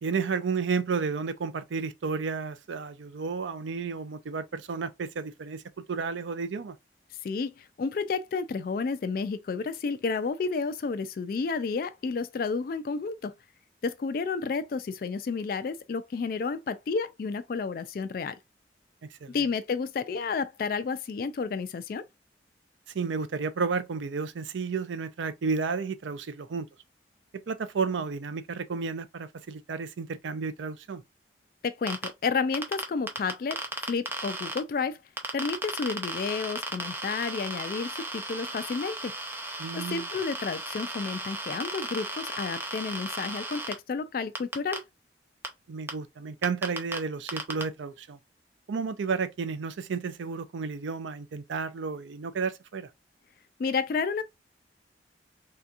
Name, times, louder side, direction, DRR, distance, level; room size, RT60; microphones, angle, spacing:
voice 1, 0.0-6.8 19.1-19.4 22.9-26.7 27.3-31.0 39.6-40.1 45.7-48.2 48.7-52.9, right 5 dB, 90° right, 0.5 m, -32 dB
voice 2, 7.2-13.3 13.8-18.4 19.3-22.0 31.6-35.0 35.3-39.1 39.7-44.8 53.6-54.2, left 4 dB, 50° left, 0.3 m, -31 dB
sound 1, 31.9-32.1 32.5-34.6 35.2-43.7 44.3-44.8 45.4-45.5 45.9-46.0 46.4-47.0 47.3-47.6, right 2 dB, 10° right, 0.5 m, -35 dB
3.4 x 2.8 x 2.4 m
head